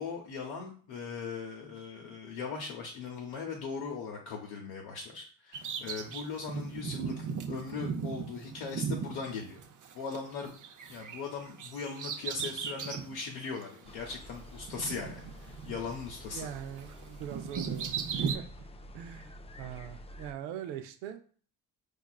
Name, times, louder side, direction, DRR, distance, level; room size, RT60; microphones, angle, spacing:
voice 1, 0.0-9.6 9.9-10.6 10.9-16.5, left 5 dB, 80° left, -2 dB, 0.8 m, -39 dB
Bird vocalization bird call bird song, 5.5-10.2 10.4-13.2 13.6-13.7 14.6-16.1 16.3-18.4, right 6 dB, 45° right, 0.6 m, -37 dB
sound 1, 13.8-20.3, left 1 dB, 15° left, 0.3 m, -49 dB
voice 2, 16.3-18.5 18.9-21.2, right 10 dB, 90° right, 7 dB, 0.5 m, -42 dB
4.6 x 2.4 x 2.3 m, 0.44 s
supercardioid pair, 50°, 43 cm